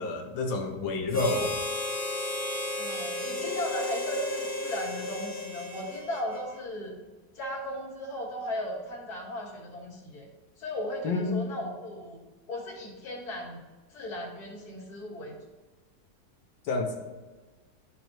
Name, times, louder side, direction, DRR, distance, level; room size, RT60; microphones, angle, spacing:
voice 1, 0.0-1.5 11.0-11.3 16.7-16.9, left 3 dB, 85° left, 2 dB, 1.8 m, -29 dB
Harmonica, 1.1-6.6, left 2 dB, 10° left, 0.8 m, -33 dB
voice 2, 2.8-7.0 7.3-10.3 10.6-12.2 12.5-13.6 13.9-15.3, left 1 dB, 55° left, -4 dB, 2.2 m, -36 dB
12.5 x 4.6 x 3.0 m, 1.3 s
omnidirectional pair, 2.0 m